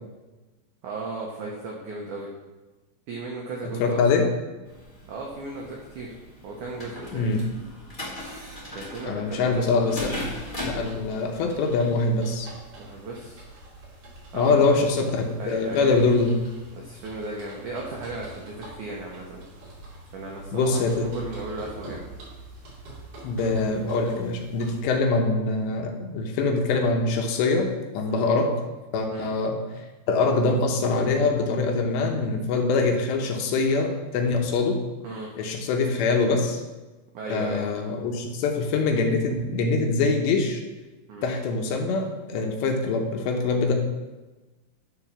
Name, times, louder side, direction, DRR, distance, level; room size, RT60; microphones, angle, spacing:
voice 1, 0.8-2.3 3.1-4.2 5.1-6.2 6.4-7.4 8.7-9.6 12.8-13.4 14.3-15.1 15.4-16.0 16.7-19.4 20.1-22.1 28.1-28.3 29.1-29.3 35.0-35.3 37.1-37.6 41.1-41.3, right 3 dB, 85° right, -1 dB, 1.7 m, -36 dB
voice 2, 3.6-4.3 7.1-7.4 9.1-10.2 10.6-12.5 14.3-16.5 20.5-21.1 23.2-27.7 27.9-28.5 28.9-34.8 35.4-36.6 37.3-40.6 41.2-43.7, left 3 dB, 75° left, 3 dB, 3.1 m, -24 dB
sound 1, 4.7-10.9, left 1 dB, 30° left, 0.8 m, -38 dB
sound 2, 9.9-24.9, right 1 dB, 50° right, 3.9 m, -44 dB
11.0 x 4.6 x 5.9 m, 1.2 s
omnidirectional pair, 5.2 m